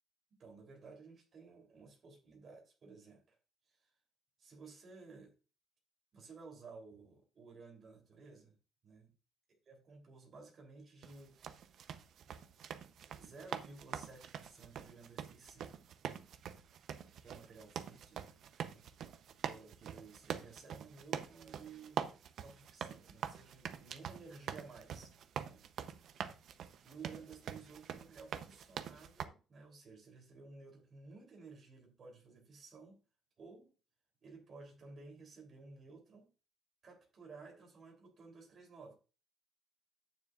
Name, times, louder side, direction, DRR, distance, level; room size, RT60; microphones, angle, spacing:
voice 1, 0.4-3.4 3.7-3.9 4.4-5.3 6.1-8.6 8.8-9.1 9.7-11.9 13.1-15.8 17.2-18.2 18.6-18.9 19.4-25.1 25.4-25.6 26.8-33.0 33.4-33.7 34.2-36.3 36.8-39.0, right 4 dB, 35° right, 2 dB, 3.2 m, -55 dB
sound 1, 11.0-29.3, right 8 dB, 50° right, 0.7 m, -44 dB
10.5 x 9.3 x 2.5 m, 0.34 s
cardioid pair, 170°, 0 cm